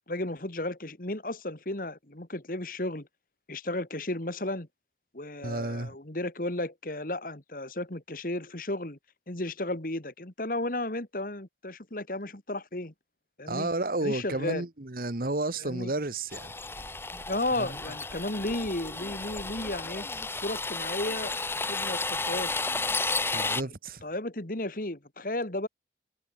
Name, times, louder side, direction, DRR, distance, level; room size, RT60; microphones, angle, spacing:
voice 1, 0.1-3.1 3.5-4.7 5.1-9.0 9.3-12.9 13.4-13.7 14.0-14.6 15.6-15.9 17.3-20.1 20.4-21.4 21.7-22.6 23.3-23.7 24.0-25.7, left 1 dB, 50° left, 2.3 m, -34 dB
voice 2, 5.4-6.0 13.5-16.5 17.6-17.7 23.3-24.0, right 2 dB, 55° right, 1.3 m, -32 dB
sound 1, 16.3-23.6, left 3 dB, 15° left, 1.0 m, -32 dB
head